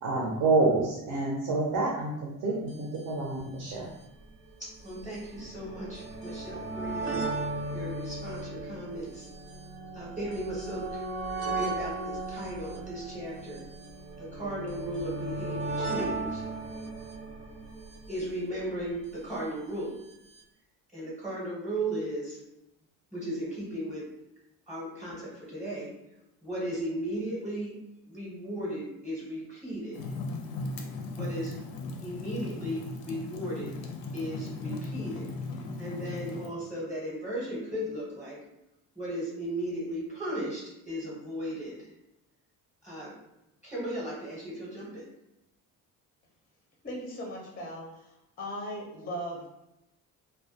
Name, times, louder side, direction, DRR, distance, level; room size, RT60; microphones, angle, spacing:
voice 1, 0.0-3.9, right 3 dB, 60° right, -3 dB, 0.6 m, -28 dB
sound 1, 2.7-2.8 2.9-3.0 3.9-19.1 20.1-20.2 20.4-20.5, right 2 dB, 90° right, 0.8 m, -37 dB
voice 2, 4.6-7.2 7.7-9.3 9.9-11.0 11.4-13.6 14.2-16.4 18.1-20.0 20.9-22.4 23.1-24.1 24.7-25.9 26.4-27.7 28.0-30.0 31.1-31.5 32.0-33.7 34.1-35.3 35.8-38.4 39.0-41.9 42.8-43.1 43.6-45.1, right 1 dB, 5° right, -7 dB, 0.7 m, -36 dB
Fire, 29.9-36.5, left 3 dB, 80° left, 0.5 m, -37 dB
voice 3, 46.8-48.1 48.4-49.5, equal, 25° left, -2 dB, 0.5 m, -38 dB
2.2 x 2.1 x 2.7 m, 0.88 s
cardioid pair, 145°, 34 cm